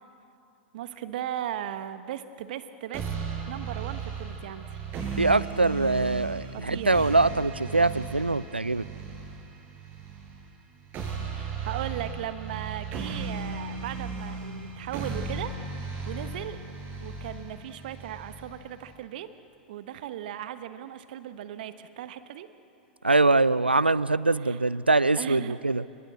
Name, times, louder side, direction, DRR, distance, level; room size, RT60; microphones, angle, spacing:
voice 1, 0.7-3.0 3.5-4.8 6.5-7.1 11.3-16.6 17.0-19.3 19.7-22.5 24.4-24.6 25.1-25.6, right 11 dB, 60° right, 11 dB, 1.2 m, -37 dB
sound 1, 2.9-18.9, right 5 dB, 35° right, 7.7 m, -36 dB
voice 2, 5.2-8.9 23.0-25.8, right 2 dB, 90° right, 19 dB, 0.5 m, -23 dB
29.5 x 25.5 x 7.7 m, 2.7 s
figure-of-eight pair, 90°, 6 cm